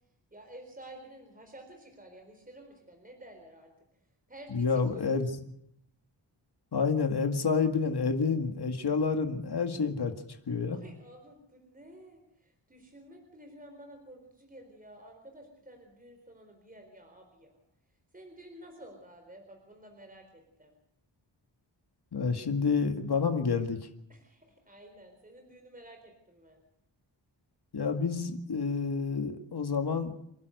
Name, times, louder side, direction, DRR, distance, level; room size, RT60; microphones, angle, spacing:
voice 1, 0.3-3.7 4.3-5.2 9.7-9.9 10.7-17.6 18.1-20.8 24.1-26.6, right 1 dB, 20° right, 3 dB, 4.2 m, -51 dB
voice 2, 4.5-5.3 6.7-10.1 10.5-10.8 22.1-23.8 27.7-30.1, left 5 dB, 65° left, 6 dB, 2.1 m, -29 dB
28.0 x 11.5 x 8.0 m, 0.75 s
wide cardioid pair, 105°, 44 cm